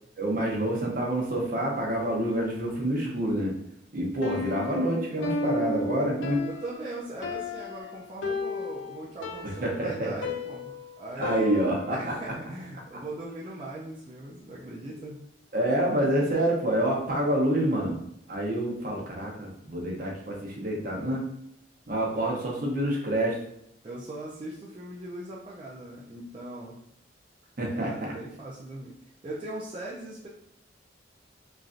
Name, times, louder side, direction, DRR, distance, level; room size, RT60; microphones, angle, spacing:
voice 1, 0.2-3.5 3.9-6.4 9.4-10.1 11.2-12.2 15.5-18.0 18.3-21.2 21.9-23.4 27.6-28.1, right 1 dB, 50° right, -2 dB, 0.8 m, -27 dB
Piano, 4.2-12.1, left 3 dB, 90° left, 0.4 m, -34 dB
voice 2, 6.4-15.2 23.8-26.8 27.7-28.9 29.2-30.3, right 1 dB, 30° right, -6 dB, 0.4 m, -40 dB
3.1 x 2.5 x 2.4 m, 0.73 s
head